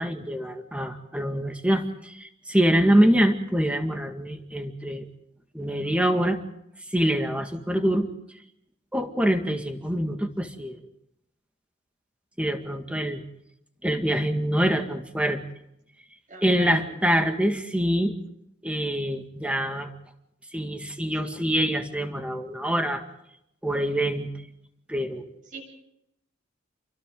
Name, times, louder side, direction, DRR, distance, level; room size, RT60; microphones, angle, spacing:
voice 1, 0.0-5.1 5.5-6.4 6.9-8.1 8.9-10.8 12.4-13.2 13.8-15.4 16.4-18.1 18.6-19.9 20.5-23.0 23.6-24.3 24.9-25.3, equal, 5° right, 5 dB, 1.9 m, -25 dB
voice 2, 16.3-16.9 17.2-17.3 25.5-25.6, right 2 dB, 40° right, 2 dB, 7.7 m, -41 dB
29.5 x 24.0 x 3.9 m, 0.79 s
head